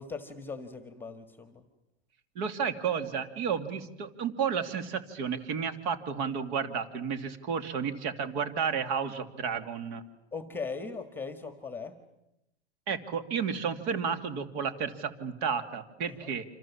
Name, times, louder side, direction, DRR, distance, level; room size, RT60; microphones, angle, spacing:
voice 1, 0.0-1.6 10.3-11.9 16.1-16.3, left 4 dB, 5° left, 9 dB, 1.7 m, -39 dB
voice 2, 2.3-10.0 12.9-16.4, right 6 dB, 40° right, 9 dB, 2.7 m, -32 dB
28.5 x 27.0 x 7.3 m, 0.86 s
supercardioid pair, 150°, 34 cm